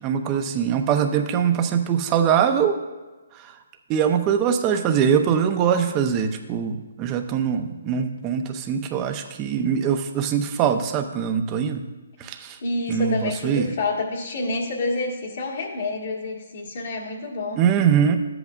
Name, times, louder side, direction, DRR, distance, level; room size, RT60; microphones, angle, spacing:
voice 1, 0.0-2.8 3.9-11.8 12.2-12.6 12.9-13.7 17.6-18.2, right 8 dB, 25° right, 6 dB, 0.6 m, -22 dB
voice 2, 12.6-17.6, left 2 dB, 65° left, -3 dB, 1.6 m, -28 dB
13.0 x 7.9 x 2.4 m, 1.2 s
hypercardioid pair, 155°, 0 cm